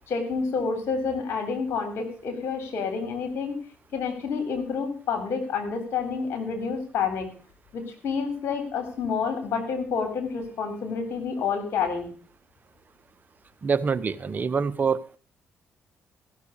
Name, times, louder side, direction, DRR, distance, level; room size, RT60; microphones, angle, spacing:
voice 1, 0.1-3.6 3.9-7.4 7.7-12.1, left 5 dB, 60° left, 5 dB, 3.6 m, -29 dB
voice 2, 13.6-15.2, right 5 dB, 40° right, 13 dB, 0.9 m, -25 dB
15.0 x 6.8 x 6.7 m, 0.42 s
hypercardioid pair, 50°, 5 cm